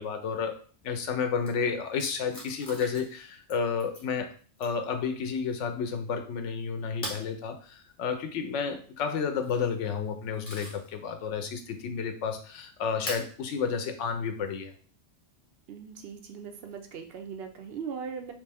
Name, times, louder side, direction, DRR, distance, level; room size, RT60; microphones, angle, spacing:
voice 1, 0.0-4.3 4.6-14.7, left 6 dB, 90° left, 6 dB, 0.9 m, -31 dB
sound 1, 1.4-1.5 2.0-3.2 3.5-4.1 4.6-4.9 7.0-7.3 9.2-9.6 10.1-10.9 11.4-11.5 13.1-13.3 14.5-14.6 16.6-17.0, left 1 dB, 45° left, 1.3 m, -40 dB
voice 2, 15.7-18.3, right 6 dB, 65° right, 5 dB, 0.8 m, -39 dB
3.2 x 3.2 x 3.4 m, 0.42 s
omnidirectional pair, 1.2 m